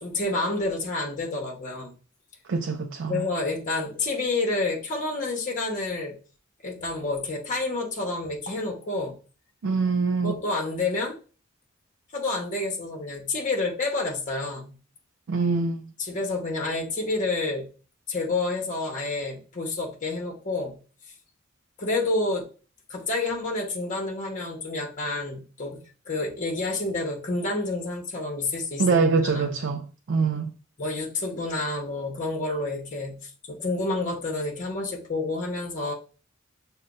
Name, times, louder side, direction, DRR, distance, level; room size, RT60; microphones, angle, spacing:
voice 1, 0.0-1.9 3.1-6.1 6.6-9.2 10.2-11.2 12.1-14.8 16.0-17.7 18.1-20.8 21.8-22.5 22.9-25.8 26.1-29.6 30.8-33.2 33.5-35.9, left 2 dB, 40° left, 1.1 m, -29 dB
voice 2, 2.5-3.2 9.6-10.4 15.3-15.9 28.8-30.5, right 4 dB, 60° right, 0.4 m, -24 dB
6.5 x 2.2 x 2.6 m
head